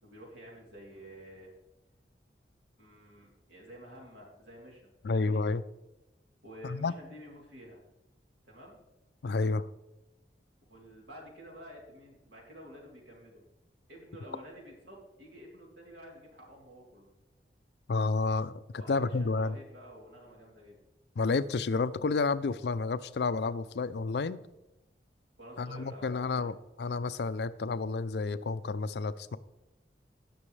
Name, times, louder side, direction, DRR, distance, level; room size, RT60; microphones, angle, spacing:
voice 1, 0.0-1.5 2.8-5.4 6.4-7.8 8.4-8.8 10.7-13.4 13.9-17.1 18.8-20.8 25.4-26.5, equal, 80° right, -2 dB, 3.3 m, -50 dB
voice 2, 5.0-5.6 6.6-6.9 9.2-9.7 17.9-19.6 21.2-24.4 25.6-29.4, left 4 dB, 70° left, 15 dB, 0.4 m, -30 dB
18.0 x 6.1 x 3.3 m, 0.95 s
head